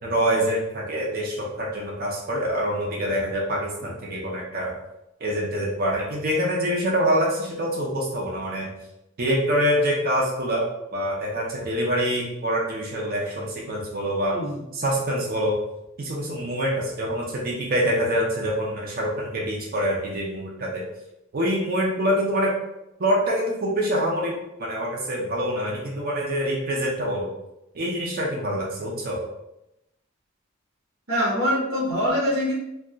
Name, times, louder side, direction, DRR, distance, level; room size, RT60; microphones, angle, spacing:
voice 1, 0.0-4.7 5.2-8.7 9.2-14.4 14.7-15.6 16.0-20.8 21.3-22.5 23.0-27.3 27.7-29.2, equal, 45° right, -3 dB, 0.5 m, -25 dB
voice 2, 31.1-32.5, equal, 75° right, -5 dB, 1.0 m, -24 dB
2.3 x 2.3 x 3.8 m, 0.88 s
head